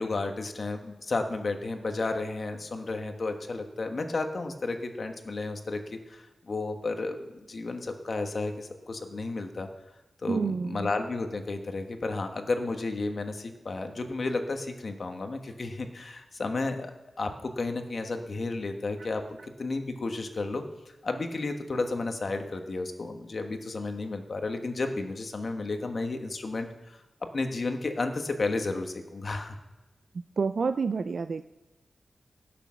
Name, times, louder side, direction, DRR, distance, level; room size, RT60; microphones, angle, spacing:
voice 1, 0.0-9.7 10.2-16.9 17.2-19.2 19.6-20.6 21.0-27.0 27.3-29.6, left 3 dB, 50° left, 5 dB, 1.3 m, -32 dB
voice 2, 10.3-10.9 30.4-31.4, right 5 dB, 60° right, 10 dB, 0.4 m, -28 dB
16.5 x 6.8 x 6.3 m, 1.1 s
wide cardioid pair, 130°, 0 cm